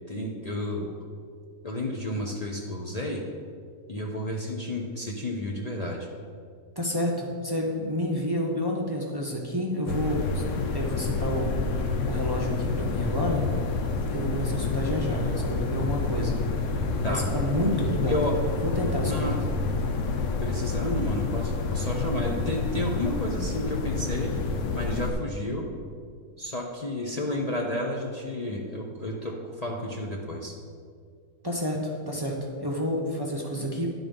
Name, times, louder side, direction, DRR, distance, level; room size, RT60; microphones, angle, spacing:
voice 1, 0.1-0.9 1.6-3.2 3.9-6.1 17.0-17.3 18.1-18.3 19.0-19.4 20.4-24.3 24.7-25.7 26.4-30.5, left 1 dB, 50° left, -1 dB, 0.5 m, -31 dB
voice 2, 6.8-13.4 14.0-16.4 17.0-18.2 18.6-19.4 31.4-32.3 32.6-33.9, equal, 25° right, -2 dB, 0.5 m, -29 dB
sound 1, 9.9-25.1, left 4 dB, 65° left, 0.9 m, -28 dB
10.0 x 4.0 x 5.3 m, 2.1 s
omnidirectional pair, 1.6 m